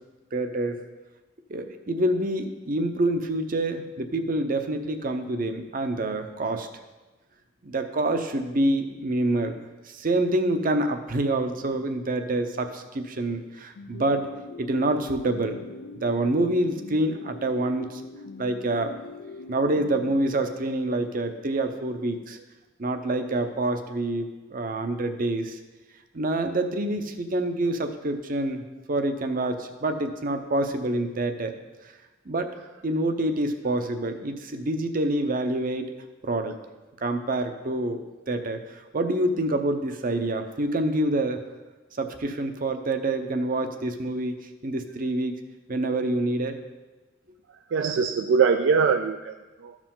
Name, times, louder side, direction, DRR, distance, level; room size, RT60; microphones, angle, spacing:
voice 1, 0.3-0.8 1.5-6.7 7.6-9.5 9.9-14.3 14.6-15.7 15.9-18.0 18.4-19.0 19.5-22.4 22.8-25.6 26.1-28.6 28.9-31.5 32.3-32.5 32.8-35.9 36.2-36.6 37.0-41.4 42.0-44.4 44.6-45.3 45.7-46.6, right 1 dB, 45° right, 7 dB, 0.7 m, -27 dB
sound 1, 13.8-20.9, left 3 dB, 85° left, 0.4 m, -42 dB
voice 2, 47.7-49.8, right 5 dB, 65° right, 7 dB, 0.3 m, -23 dB
13.5 x 4.9 x 3.7 m, 1.1 s
head